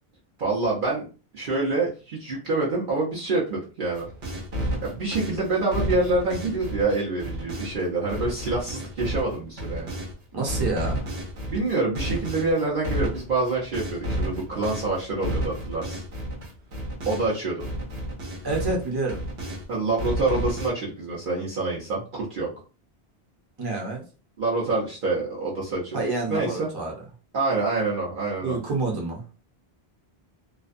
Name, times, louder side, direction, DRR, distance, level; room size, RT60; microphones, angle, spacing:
voice 1, 0.4-1.1 1.3-4.1 4.8-9.9 11.5-16.0 17.1-17.7 19.7-22.5 24.4-26.0 26.3-26.7 27.3-28.6, right 3 dB, 55° right, -5 dB, 0.8 m, -26 dB
sound 1, 4.0-10.1 10.5-17.4 17.6-19.6 20.0-20.7, equal, 80° right, 1.1 m, -32 dB
voice 2, 10.3-11.1 18.4-19.2 23.6-24.0 25.9-26.9 28.4-29.2, right 3 dB, 25° right, -1 dB, 0.7 m, -28 dB
2.4 x 2.2 x 2.4 m, 0.35 s
omnidirectional pair, 1.0 m